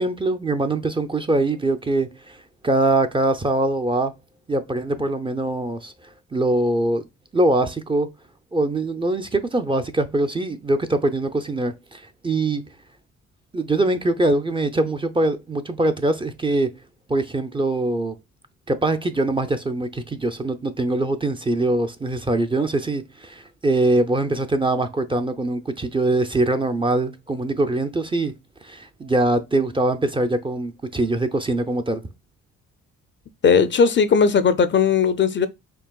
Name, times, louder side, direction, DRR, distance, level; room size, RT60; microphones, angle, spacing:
voice 1, 0.0-4.1 4.5-7.1 7.3-8.1 8.5-12.6 13.5-16.7 17.1-18.1 18.7-28.3 28.6-32.0, right 2 dB, 15° right, 0.5 m, -23 dB
voice 2, 33.4-35.5, left 6 dB, 40° left, 0.5 m, -17 dB
4.7 x 3.0 x 2.3 m
cardioid pair, 90°, 30 cm